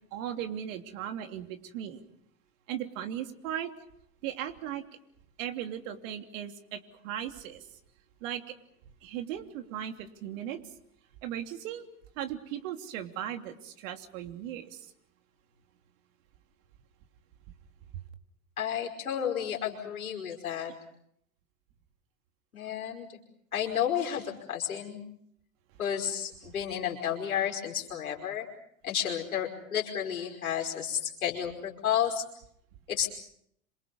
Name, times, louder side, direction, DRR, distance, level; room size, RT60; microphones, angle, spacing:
voice 1, 0.1-2.0 2.7-3.7 4.2-4.8 5.4-7.6 8.2-8.5 9.0-10.6 11.2-11.8 12.2-14.9 17.9-18.0 26.5-26.6, right 10 dB, 65° right, 5 dB, 3.2 m, -37 dB
voice 2, 18.6-20.7 22.5-23.1 23.5-25.0 25.8-28.5 28.8-32.2 32.9-33.1, left 9 dB, 90° left, 0 dB, 5.4 m, -31 dB
28.0 x 27.0 x 5.5 m, 0.72 s
hypercardioid pair, 85°, 42 cm